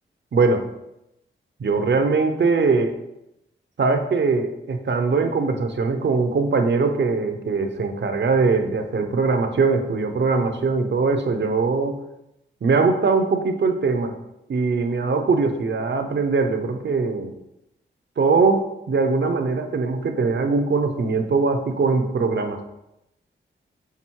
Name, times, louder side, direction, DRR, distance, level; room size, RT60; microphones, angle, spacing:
voice 1, 0.3-0.6 1.6-3.0 3.8-12.0 12.6-14.2 14.5-17.3 18.2-22.6, right 4 dB, 60° right, 6 dB, 0.7 m, -21 dB
6.0 x 3.5 x 4.6 m, 0.87 s
wide cardioid pair, 75°, 20 cm